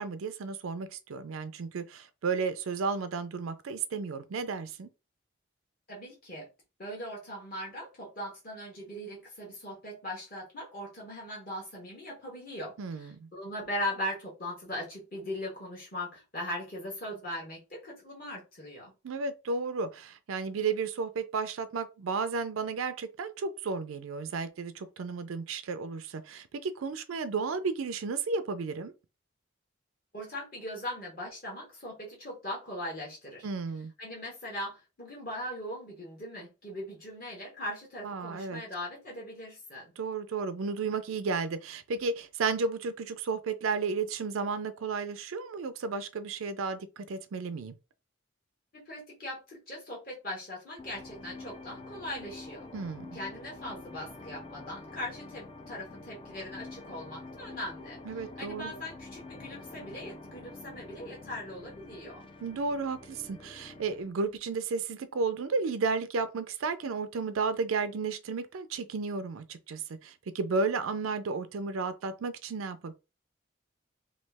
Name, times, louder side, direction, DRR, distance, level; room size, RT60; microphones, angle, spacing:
voice 1, 0.0-4.9 12.8-13.3 19.0-28.9 33.4-33.9 38.0-38.6 40.0-47.8 52.7-53.1 58.1-58.7 62.4-72.9, right 4 dB, 85° right, 0.4 m, -33 dB
voice 2, 5.9-6.5 6.8-18.9 30.1-33.5 34.0-39.9 48.7-52.7 53.1-62.2, left 1 dB, 45° left, 1.2 m, -40 dB
sound 1, 50.8-64.1, left 2 dB, 25° left, 0.3 m, -47 dB
3.1 x 2.4 x 3.3 m
head